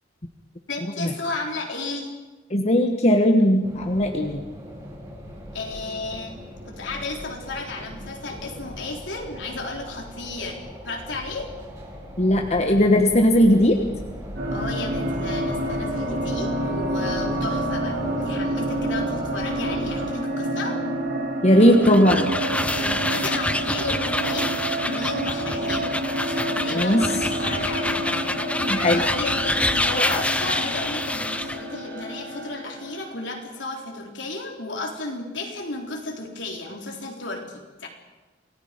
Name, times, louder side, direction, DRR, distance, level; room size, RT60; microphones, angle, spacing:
voice 1, 0.7-2.1 5.5-6.4 6.7-11.5 14.5-20.8 22.7-25.9 26.2-28.0 28.9-37.9, left 3 dB, 75° left, 1 dB, 3.8 m, -33 dB
voice 2, 2.5-4.4 12.2-13.7 21.4-22.3 26.7-27.0 28.7-29.0, equal, 40° left, 3 dB, 1.4 m, -18 dB
sound 1, 3.6-20.1, equal, 20° right, 7.5 m, -38 dB
sound 2, 14.4-33.3, right 1 dB, 80° right, 7.0 m, -28 dB
sound 3, 21.5-31.6, left 1 dB, 5° left, 0.7 m, -27 dB
27.5 x 18.0 x 5.3 m, 1.2 s
head